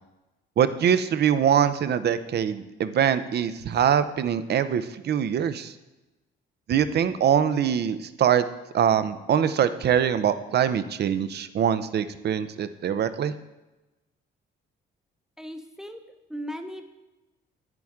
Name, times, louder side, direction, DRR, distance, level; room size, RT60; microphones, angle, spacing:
voice 1, 0.6-5.7 6.7-8.4 8.7-13.3, right 8 dB, 55° right, 12 dB, 0.6 m, -23 dB
voice 2, 15.4-16.0 16.3-16.9, equal, 5° right, 5 dB, 0.9 m, -37 dB
11.0 x 9.2 x 3.6 m, 1.1 s
cardioid pair, 90°, 20 cm